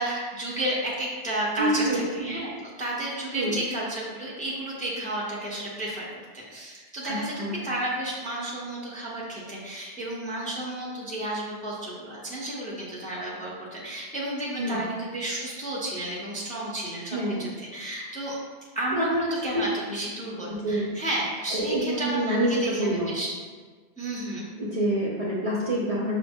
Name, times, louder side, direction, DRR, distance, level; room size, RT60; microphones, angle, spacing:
voice 1, 0.0-2.5 2.8-6.1 6.3-7.3 7.6-18.4 18.7-23.3 24.0-24.5, right 1 dB, 10° left, -5 dB, 0.5 m, -32 dB
voice 2, 1.6-2.1 3.3-3.6 7.1-7.6 14.6-14.8 17.1-17.5 18.9-19.2 20.5-20.9 21.5-23.1 24.6-26.2, right 1 dB, 45° right, -6 dB, 0.5 m, -27 dB
5.7 x 2.0 x 3.5 m, 1.5 s
omnidirectional pair, 1.1 m